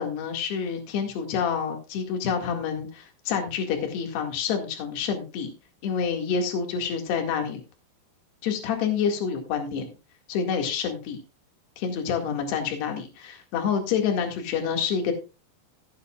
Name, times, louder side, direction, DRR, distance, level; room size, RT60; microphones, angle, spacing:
voice 1, 0.0-5.5 5.8-7.6 8.4-9.9 10.3-11.2 11.8-15.1, left 6 dB, 70° left, 3 dB, 4.0 m, -28 dB
15.5 x 9.8 x 2.4 m, 0.29 s
omnidirectional pair, 5.2 m